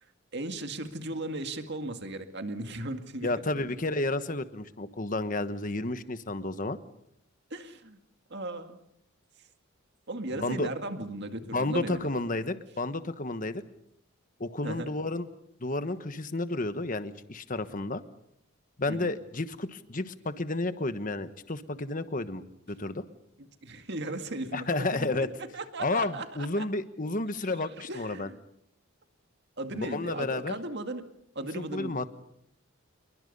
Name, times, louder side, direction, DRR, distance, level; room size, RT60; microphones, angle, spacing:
voice 1, 0.3-3.3 7.5-8.0 8.3-8.8 10.1-12.1 14.6-14.9 18.9-19.1 23.6-25.3 25.5-26.6 27.9-28.4 29.6-31.1 31.4-31.9, right 2 dB, 50° right, 7 dB, 2.0 m, -36 dB
voice 2, 3.2-6.8 10.4-10.7 11.5-13.6 14.4-15.3 15.6-18.0 18.8-23.0 24.5-25.3 25.8-28.3 29.7-30.5 31.5-32.1, left 2 dB, 40° left, 11 dB, 1.3 m, -31 dB
28.0 x 22.5 x 5.5 m, 0.73 s
head